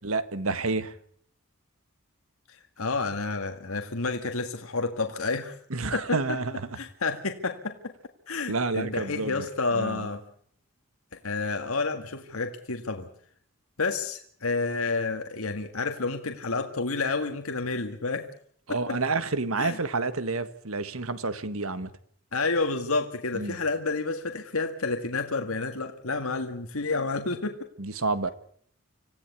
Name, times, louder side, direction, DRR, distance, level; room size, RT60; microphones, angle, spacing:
voice 1, 0.0-1.0 5.7-6.8 8.5-9.5 9.7-10.1 18.7-21.9 23.3-23.6 27.8-28.3, right 3 dB, 75° right, 1.6 m, -29 dB
voice 2, 2.5-5.6 5.9-6.2 6.8-7.9 8.3-10.2 11.2-13.1 13.8-18.3 18.7-19.0 19.6-19.8 22.3-27.7, left 3 dB, 80° left, 1.8 m, -30 dB
26.5 x 16.0 x 8.5 m
head